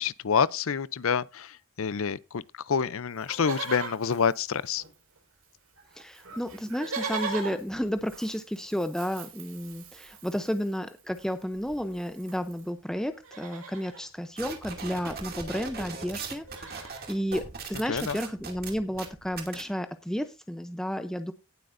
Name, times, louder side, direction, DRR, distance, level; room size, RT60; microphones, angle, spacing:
voice 1, 0.0-4.8 17.9-18.2, left 6 dB, 70° left, 0.5 m, -28 dB
Livestock farm animals working animals, 3.2-5.2 5.4-5.5 5.8-12.7 13.1-14.0 15.3-15.4 15.5-15.8 16.2-17.1 17.7-17.8, right 4 dB, 75° right, 5.1 m, -41 dB
voice 2, 5.9-21.3, equal, 5° left, 0.6 m, -32 dB
sound 1, 14.4-19.6, right 4 dB, 45° right, 2.5 m, -39 dB
18.0 x 7.7 x 2.6 m
head